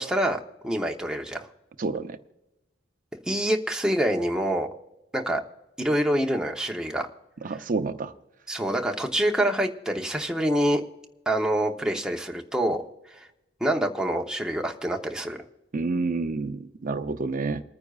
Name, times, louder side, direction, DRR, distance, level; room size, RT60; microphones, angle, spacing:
voice 1, 0.0-1.5 3.3-4.7 5.1-5.4 5.8-7.1 8.5-10.8 11.3-12.8 13.1-13.3 13.6-15.4, right 1 dB, 5° right, 2 dB, 0.8 m, -26 dB
voice 2, 1.8-2.2 7.4-8.1 15.7-17.6, right 3 dB, 45° right, 9 dB, 0.6 m, -29 dB
29.0 x 9.7 x 2.4 m, 0.98 s
head